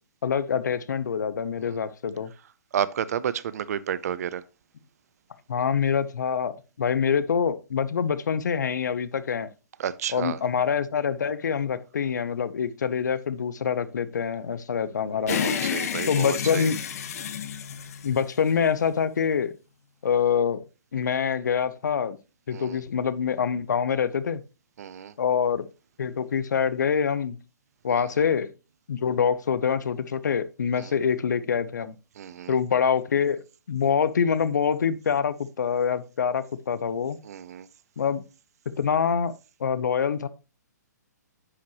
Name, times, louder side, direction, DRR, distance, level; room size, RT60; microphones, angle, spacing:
voice 1, 0.2-2.3 5.5-9.5 10.1-15.4 16.1-16.8 18.0-19.5 20.0-20.6 20.9-22.2 22.5-24.4 25.2-25.7 26.0-27.4 27.8-28.5 28.9-31.9 32.5-33.4 33.7-37.2 38.0-38.2 38.8-39.3 39.6-40.3, left 7 dB, 75° left, 0.8 m, -25 dB
voice 2, 2.7-4.4 9.8-10.4 15.3-16.7 22.5-22.8 24.8-25.1 27.9-28.0 30.8-30.9 32.2-32.5 37.2-37.7, right 9 dB, 60° right, 0.6 m, -31 dB
sound 1, 15.3-18.8, left 8 dB, 55° left, 1.2 m, -30 dB
9.7 x 5.8 x 3.0 m
hypercardioid pair, 140°, 10 cm